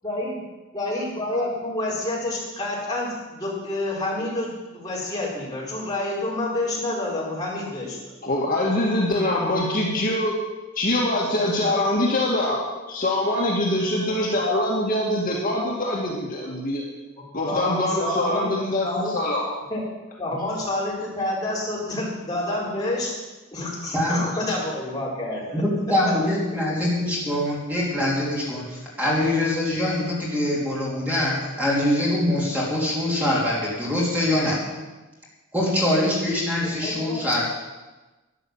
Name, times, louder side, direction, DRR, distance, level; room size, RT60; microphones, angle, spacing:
voice 1, 0.0-0.4 0.7-8.1 9.0-9.1 17.4-18.5 18.8-19.1 19.7-19.8 20.2-23.1 23.5-25.6 26.1-26.2 36.6-37.2, left 1 dB, 20° left, -5 dB, 4.6 m, -28 dB
voice 2, 8.2-10.3 10.8-12.6 12.9-16.8 17.3-19.4, left 1 dB, 40° left, -3 dB, 2.1 m, -23 dB
voice 3, 23.9-24.2 25.6-34.6 35.5-37.4, left 1 dB, 10° right, -5 dB, 3.2 m, -23 dB
12.0 x 10.5 x 7.3 m, 1.2 s
head